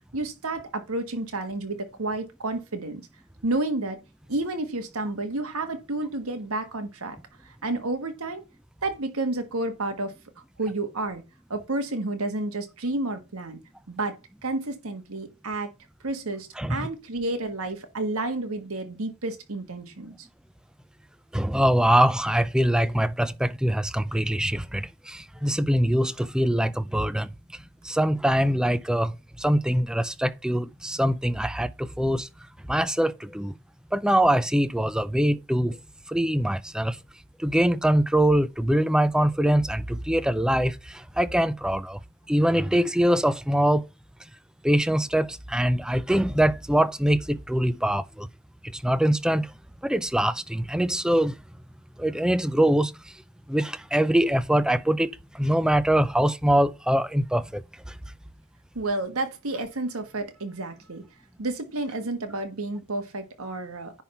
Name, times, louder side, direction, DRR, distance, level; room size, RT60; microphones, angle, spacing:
voice 1, 0.1-3.0 3.4-4.0 4.3-8.4 8.8-11.2 11.5-13.6 13.9-14.2 14.4-15.7 16.0-20.3 58.7-61.0 61.4-64.0, right 2 dB, 90° right, 1.5 m, -30 dB
voice 2, 16.6-16.9 21.3-32.3 32.7-33.5 33.9-35.8 36.1-37.0 37.4-42.0 42.3-43.9 44.6-48.3 48.7-49.5 49.8-51.4 52.0-53.2 53.5-58.0, right 1 dB, 5° right, 0.4 m, -23 dB
10.0 x 3.8 x 5.5 m
head